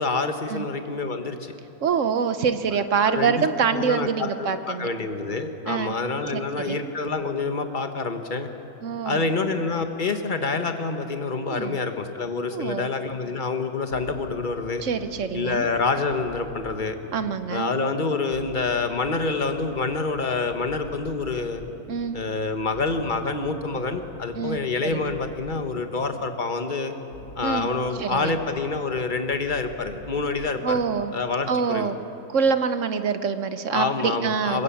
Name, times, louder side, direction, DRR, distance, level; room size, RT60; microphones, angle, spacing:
voice 1, 0.0-1.5 3.0-3.4 3.7-8.5 9.0-14.8 15.3-17.0 17.5-21.6 22.1-26.9 27.4-30.8 31.1-31.9 33.7-34.6, left 4 dB, 35° left, 7 dB, 1.4 m, -27 dB
voice 2, 1.8-4.9 5.7-5.9 6.3-6.8 8.8-9.3 11.5-11.8 12.5-12.9 14.8-15.7 17.1-17.7 21.9-22.1 24.4-24.6 24.9-25.1 27.4-27.7 28.0-28.4 30.6-31.1 31.5-32.0 32.3-34.6, right 6 dB, 60° right, 10 dB, 1.2 m, -25 dB
sound 1, 13.9-31.5, left 1 dB, 70° left, 3.2 m, -46 dB
22.0 x 20.5 x 8.5 m, 3.0 s
omnidirectional pair, 1.6 m